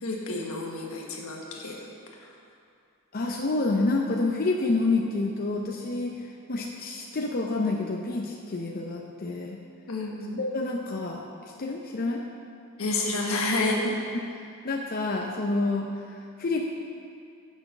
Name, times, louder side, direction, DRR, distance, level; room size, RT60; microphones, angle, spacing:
voice 1, 0.0-1.8 9.9-10.4 12.8-13.8, left 2 dB, 85° left, -1 dB, 1.4 m, -29 dB
voice 2, 3.1-9.6 10.3-11.2 11.6-12.2 13.8-13.9 14.2-14.3 14.6-15.9 16.4-16.6, left 3 dB, 45° left, 0 dB, 0.6 m, -28 dB
8.3 x 6.1 x 6.6 m, 2.4 s
head